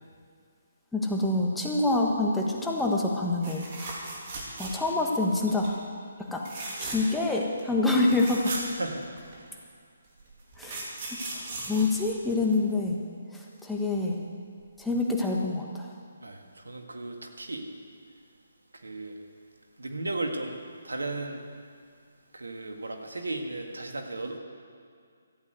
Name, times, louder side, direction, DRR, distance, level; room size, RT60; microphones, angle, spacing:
voice 1, 0.9-3.6 4.6-5.8 6.3-6.4 6.8-8.5 10.6-10.9 11.3-13.0 13.3-14.2 14.8-15.9, left 2 dB, 5° left, -2 dB, 1.5 m, -26 dB
sound 1, 3.4-5.0 5.4-5.7 6.4-7.2 7.6-7.7 7.9-9.4 10.2-12.7 14.6-14.8 15.1-15.2, right 2 dB, 40° right, 3.3 m, -38 dB
voice 2, 8.5-9.1 16.2-17.6 18.8-19.1 19.8-20.6 20.8-21.5 22.3-24.4, right 2 dB, 85° right, 3 dB, 1.9 m, -35 dB
14.0 x 8.8 x 8.1 m, 2.2 s
figure-of-eight pair, 145°, 0 cm